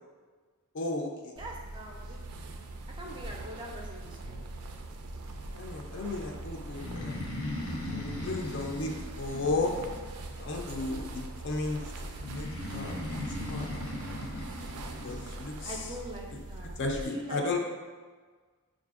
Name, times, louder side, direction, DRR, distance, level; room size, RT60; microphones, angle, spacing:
voice 1, 0.7-1.3 5.5-7.2 7.9-8.9 9.2-9.7 10.4-11.9 12.3-13.0 13.5-13.7 15.0-15.7 16.8-17.6, left 3 dB, 55° left, 2 dB, 0.4 m, -34 dB
voice 2, 1.4-2.2 3.0-4.4 15.6-17.6, right 1 dB, 20° right, -1 dB, 0.4 m, -43 dB
sound 1, 1.4-17.0, right 2 dB, 85° right, 0.4 m, -42 dB
Breathing, 6.7-10.4 12.2-15.3, left 1 dB, 80° left, 0.8 m, -38 dB
5.3 x 2.5 x 2.4 m, 1.5 s
head